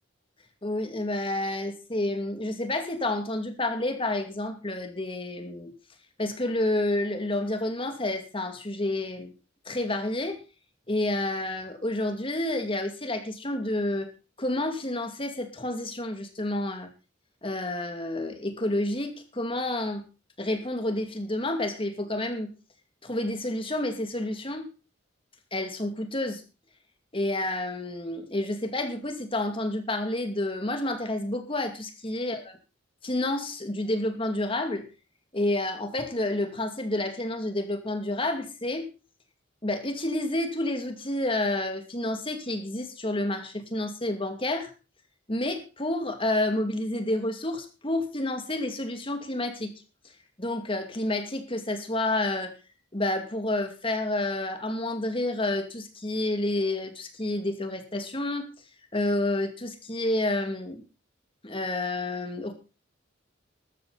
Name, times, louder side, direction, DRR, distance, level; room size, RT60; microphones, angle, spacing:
voice 1, 0.6-5.7 6.2-9.3 9.7-10.4 10.9-14.1 14.4-16.9 17.4-20.0 20.4-22.5 23.0-24.7 25.5-26.4 27.1-32.5 33.0-34.9 35.3-38.9 39.6-44.7 45.3-49.7 50.4-52.5 52.9-58.4 58.9-60.8 61.4-62.5, left 1 dB, 25° left, 6 dB, 2.5 m, -29 dB
13.5 x 13.5 x 4.1 m, 0.31 s
head